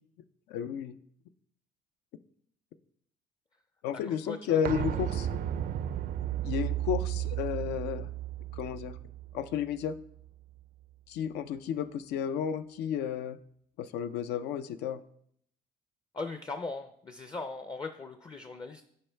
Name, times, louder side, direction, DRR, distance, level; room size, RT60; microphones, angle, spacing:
voice 1, 0.5-1.0 3.8-5.3 6.4-8.1 8.5-9.0 9.3-9.9 11.1-13.4 13.8-15.0, left 8 dB, 80° left, 11 dB, 0.5 m, -32 dB
voice 2, 4.0-4.6 4.9-5.0 16.1-18.8, left 3 dB, 25° left, 8 dB, 0.5 m, -39 dB
sound 1, 4.6-10.3 10.6-10.7, right 12 dB, 55° right, 0.4 m, -34 dB
10.5 x 4.6 x 3.3 m, 0.68 s
cardioid pair, 110°, 17 cm